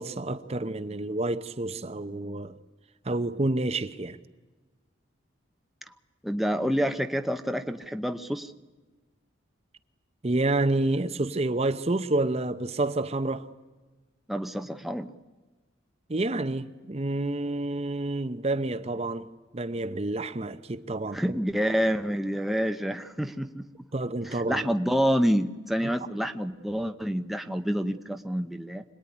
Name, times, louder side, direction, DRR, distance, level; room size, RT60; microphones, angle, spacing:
voice 1, 0.0-2.5 3.0-4.2 10.2-13.5 16.1-19.3 19.5-21.4 23.9-24.7, right 2 dB, 30° right, 0.8 m, -29 dB
voice 2, 6.2-8.5 14.3-15.1 21.1-23.7 24.2-28.8, equal, ahead, 0.8 m, -28 dB
26.0 x 19.5 x 9.9 m
head